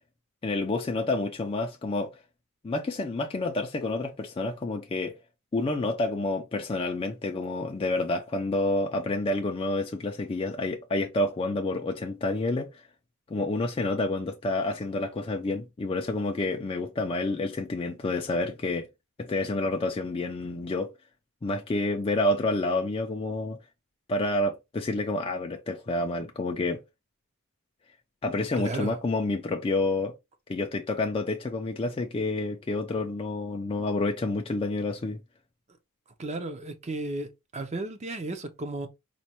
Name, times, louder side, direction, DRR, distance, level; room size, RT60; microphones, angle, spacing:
voice 1, 0.4-2.1 2.6-5.2 5.5-12.8 13.3-18.9 19.2-20.9 21.4-23.6 24.1-26.8 28.2-30.1 30.5-35.2, left 2 dB, 25° left, 0.3 m, -29 dB
voice 2, 28.5-29.0 36.2-38.9, right 2 dB, 30° right, 0.5 m, -34 dB
4.1 x 2.2 x 2.9 m
head